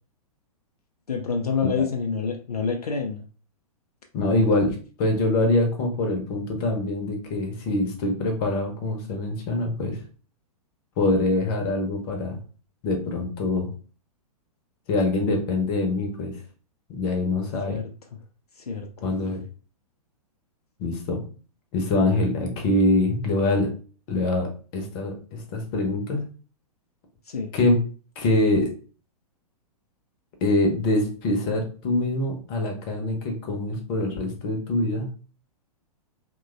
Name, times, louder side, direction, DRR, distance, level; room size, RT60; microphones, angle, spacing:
voice 1, 1.1-3.2 17.7-18.2 18.6-19.1 27.3-27.5, left 5 dB, 75° left, 3 dB, 0.4 m, -28 dB
voice 2, 4.1-10.0 11.0-12.4 12.8-13.7 14.9-16.4 16.9-17.8 19.0-19.4 20.8-21.2 21.7-23.7 24.1-26.2 27.5-27.8 28.2-28.7 30.4-35.1, left 2 dB, 35° left, 3 dB, 0.7 m, -24 dB
2.9 x 2.2 x 2.4 m, 0.37 s
figure-of-eight pair, 110°, 20 cm